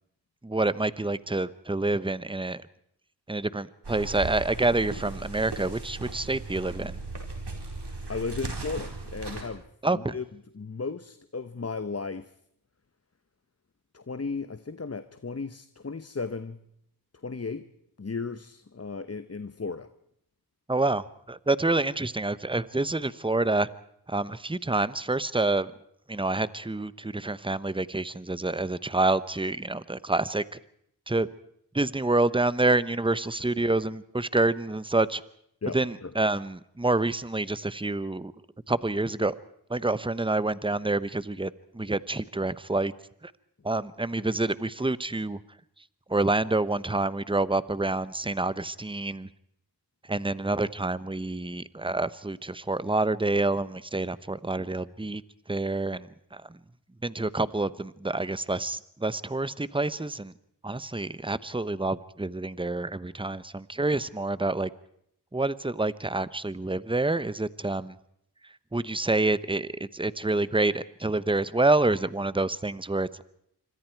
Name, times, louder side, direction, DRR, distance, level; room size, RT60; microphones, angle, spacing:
voice 1, 0.4-2.6 3.3-7.0 9.8-10.1 20.7-23.7 24.1-25.7 26.1-30.6 31.1-31.3 31.7-35.2 35.7-38.3 38.7-39.3 39.7-42.9 43.2-43.3 43.6-45.4 46.1-49.3 50.1-55.2 55.5-56.6 57.0-60.3 60.6-64.7 65.3-68.0 68.7-73.2, right 2 dB, 15° right, 16 dB, 1.0 m, -27 dB
sound 1, 3.8-9.4, right 3 dB, 80° right, 4.7 m, -37 dB
voice 2, 8.1-9.6 9.9-10.2 10.5-12.3 13.9-16.6 17.2-17.7 18.0-19.9 35.6-36.1, left 4 dB, 35° left, 12 dB, 1.0 m, -35 dB
26.5 x 25.0 x 4.7 m, 0.71 s
wide cardioid pair, 50°, 40 cm